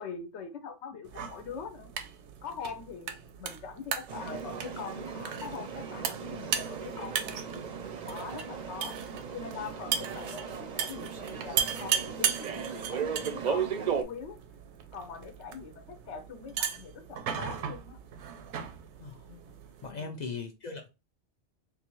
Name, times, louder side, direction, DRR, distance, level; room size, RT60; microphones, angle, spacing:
voice 1, 0.0-1.9 2.4-7.5 8.1-9.0 9.3-14.4 14.9-18.0 19.8-20.3, left 6 dB, 85° left, 0.9 m, -43 dB
sound 1, 1.1-19.9, right 8 dB, 90° right, 0.9 m, -37 dB
sound 2, 4.1-14.0, right 7 dB, 50° right, 0.5 m, -36 dB
voice 2, 19.0-19.4 19.8-20.9, left 4 dB, 55° left, 0.5 m, -39 dB
3.9 x 2.5 x 3.0 m
omnidirectional pair, 1.1 m